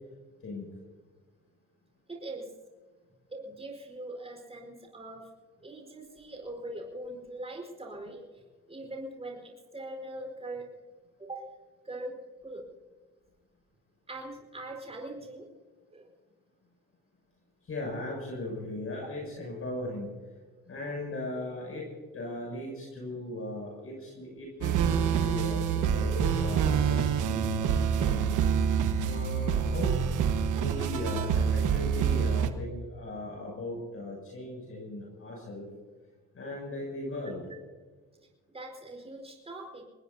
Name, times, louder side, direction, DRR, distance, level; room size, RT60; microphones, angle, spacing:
voice 1, 2.1-2.5 3.3-5.3 5.6-10.7 11.2-11.5 11.8-12.7 14.1-15.5 15.9-16.1 37.5-37.6 38.2-38.3 38.5-39.8, right 1 dB, 20° right, 0 dB, 4.7 m, -42 dB
voice 2, 17.7-20.1 20.7-21.9 22.1-28.4 29.0-30.0 30.5-35.7 36.3-37.4, left 1 dB, 45° left, -2 dB, 7.0 m, -38 dB
sound 1, 24.6-32.5, right 7 dB, 85° right, 1.3 m, -26 dB
25.0 x 20.0 x 2.8 m, 1.4 s
cardioid pair, 90°, 30 cm